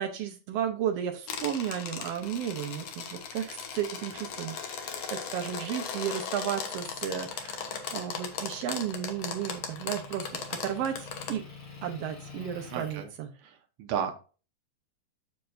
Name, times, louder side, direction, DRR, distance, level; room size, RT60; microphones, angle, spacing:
voice 1, 0.0-11.4 11.8-13.3, right 9 dB, 90° right, 4 dB, 1.3 m, -34 dB
sound 1, 1.3-11.3, left 6 dB, 60° left, 1.9 m, -38 dB
Motor vehicle (road) / Engine, 6.7-13.0, left 4 dB, 35° left, 4.0 m, -48 dB
voice 2, 12.7-13.1 13.4-14.1, right 8 dB, 70° right, 6 dB, 2.0 m, -33 dB
7.4 x 6.8 x 2.6 m, 0.35 s
omnidirectional pair, 3.9 m